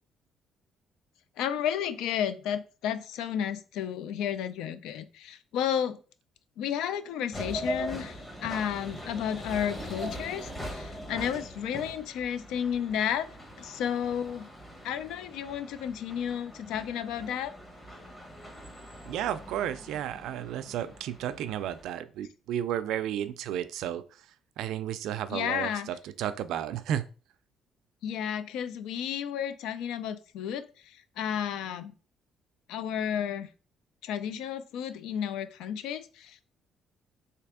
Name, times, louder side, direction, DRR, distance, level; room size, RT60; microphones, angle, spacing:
voice 1, 1.4-6.0 6.6-8.1 8.4-13.3 13.6-14.5 14.8-17.5 25.3-25.9 28.0-30.6 31.2-31.9 32.7-33.5 34.0-36.5, left 9 dB, 90° left, 13 dB, 0.4 m, -32 dB
sound 1, 7.3-21.8, equal, 15° left, 0.9 m, -41 dB
voice 2, 19.1-24.0 24.6-27.1, right 10 dB, 80° right, 12 dB, 0.3 m, -33 dB
3.3 x 2.8 x 3.5 m, 0.37 s
cardioid pair, 140°, 0 cm